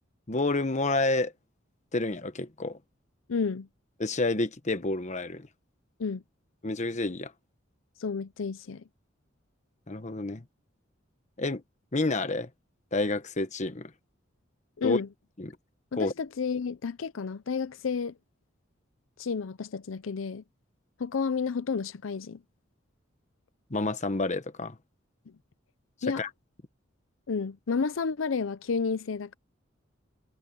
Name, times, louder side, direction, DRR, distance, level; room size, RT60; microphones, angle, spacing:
voice 1, 0.3-1.3 1.9-2.8 4.0-5.5 6.6-7.3 9.9-10.4 11.4-11.6 11.9-12.5 12.9-13.9 14.8-15.0 15.4-15.5 15.9-16.1 23.7-24.8 26.2-26.3, left 2 dB, 35° left, 1.2 m, -29 dB
voice 2, 3.3-3.7 6.0-6.2 8.0-8.8 14.8-15.1 15.9-18.1 19.2-20.4 21.0-22.4 26.0-26.2 27.3-29.4, left 5 dB, 85° left, 0.6 m, -31 dB
head